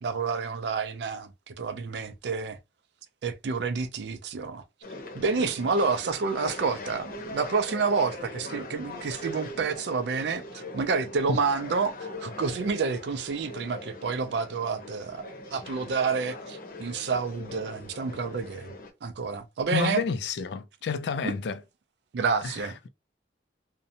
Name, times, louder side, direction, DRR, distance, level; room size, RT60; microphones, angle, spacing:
voice 1, 0.0-2.6 3.2-4.6 5.1-12.0 12.2-18.7 19.0-20.0 21.2-21.3 22.1-22.9, right 5 dB, 70° right, 0.4 m, -29 dB
sound 1, 4.8-18.9, left 2 dB, 50° left, 0.8 m, -41 dB
voice 2, 19.7-21.6 22.4-22.5, left 5 dB, 70° left, 0.4 m, -29 dB
2.5 x 2.1 x 2.7 m
head